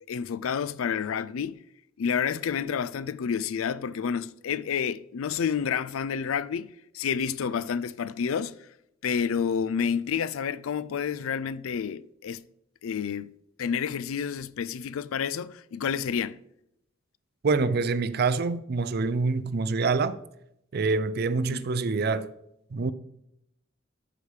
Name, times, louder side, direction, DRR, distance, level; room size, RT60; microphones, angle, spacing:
voice 1, 0.1-1.6 2.0-8.7 9.0-12.5 12.8-13.3 13.6-16.4 21.4-21.7, left 7 dB, 90° left, 0.4 m, -29 dB
voice 2, 17.4-20.2 20.7-22.3 22.7-22.9, right 4 dB, 50° right, 0.5 m, -26 dB
13.5 x 4.9 x 3.3 m
head